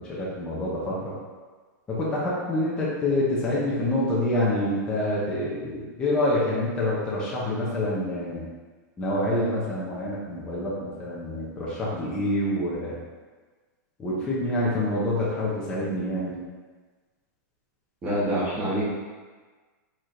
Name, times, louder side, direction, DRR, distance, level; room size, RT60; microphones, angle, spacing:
voice 1, 0.1-1.1 1.9-8.4 9.0-13.0 14.0-16.4, left 1 dB, 10° left, -7 dB, 0.5 m, -27 dB
voice 2, 18.0-18.8, right 1 dB, 15° right, -7 dB, 1.0 m, -26 dB
4.7 x 4.3 x 2.5 m, 1.4 s
supercardioid pair, 180°, 10 cm